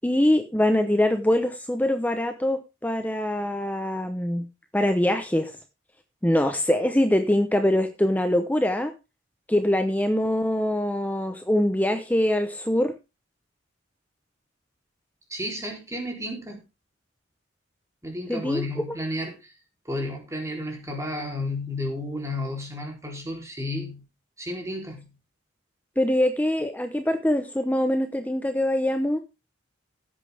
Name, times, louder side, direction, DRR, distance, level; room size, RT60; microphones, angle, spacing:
voice 1, 0.0-4.5 4.7-5.5 6.2-8.9 9.5-12.9 18.3-18.6 26.0-29.2, left 1 dB, 10° left, 0.8 m, -23 dB
voice 2, 15.3-16.6 18.0-19.5 19.9-24.0 24.4-25.1, left 1 dB, 15° right, 3.5 m, -32 dB
16.0 x 8.7 x 3.5 m
head